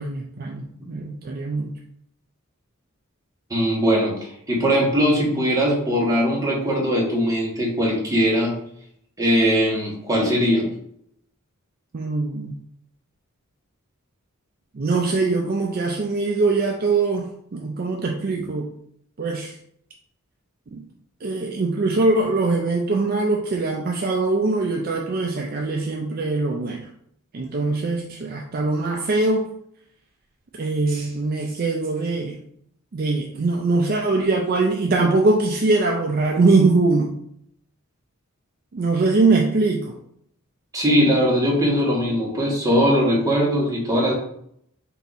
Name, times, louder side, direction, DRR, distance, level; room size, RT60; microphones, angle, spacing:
voice 1, 0.0-1.7 11.9-12.5 14.7-18.7 19.2-19.6 20.7-20.8 21.2-26.9 27.3-29.5 30.5-32.4 32.9-37.1 38.7-40.0, right 3 dB, 45° right, 1 dB, 0.4 m, -22 dB
voice 2, 3.5-8.5 9.2-10.7 40.7-44.1, equal, 15° right, -4 dB, 1.3 m, -20 dB
4.5 x 2.8 x 4.0 m, 0.70 s
head